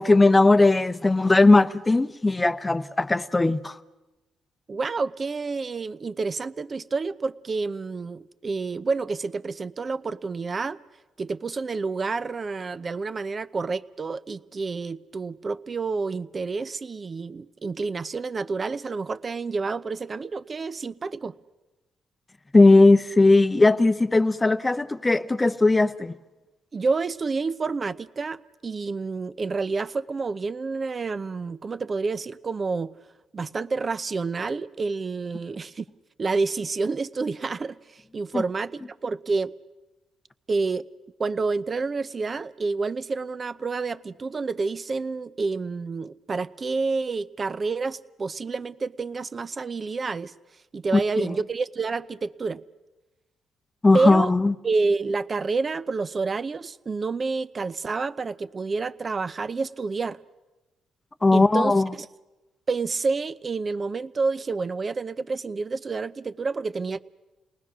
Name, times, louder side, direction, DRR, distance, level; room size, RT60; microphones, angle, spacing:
voice 1, 0.0-3.8 22.5-26.1 38.3-38.4 50.9-51.0 53.8-54.5 61.2-61.9, left 2 dB, 20° left, 0.8 m, -18 dB
voice 2, 4.7-10.8 11.2-21.4 26.7-32.9 33.3-35.9 36.2-39.5 40.5-40.9 41.2-50.3 50.7-52.6 53.9-54.3 54.6-60.2 61.3-62.1 62.7-67.0, right 4 dB, 35° right, 0.7 m, -29 dB
29.5 x 19.5 x 6.2 m
cardioid pair, 90°, 0 cm